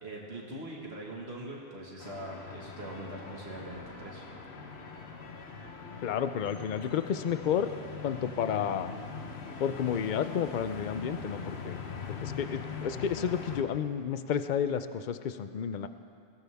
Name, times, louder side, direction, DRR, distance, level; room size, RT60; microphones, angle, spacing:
voice 1, 0.0-4.2, right 1 dB, 80° right, -3 dB, 2.0 m, -42 dB
sound 1, 2.0-13.6, left 5 dB, 90° left, 1.3 m, -42 dB
voice 2, 6.0-7.7 8.0-8.9 9.6-11.8 12.1-15.9, left 8 dB, 55° left, 11 dB, 0.7 m, -31 dB
21.0 x 16.0 x 3.5 m, 2.4 s
omnidirectional pair, 1.1 m